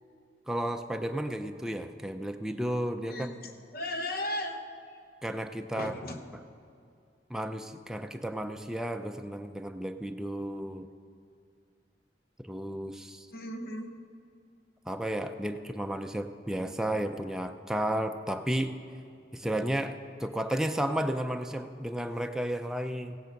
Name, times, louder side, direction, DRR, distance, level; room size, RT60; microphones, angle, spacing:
voice 1, 0.5-3.3 5.2-5.9 7.3-10.9 12.4-13.3 14.9-18.8 19.3-23.2, right 1 dB, 5° right, 6 dB, 0.5 m, -33 dB
voice 2, 3.1-4.6 5.8-6.2 13.3-13.9, left 1 dB, 60° left, 5 dB, 1.1 m, -36 dB
16.0 x 8.9 x 5.2 m, 2.4 s
head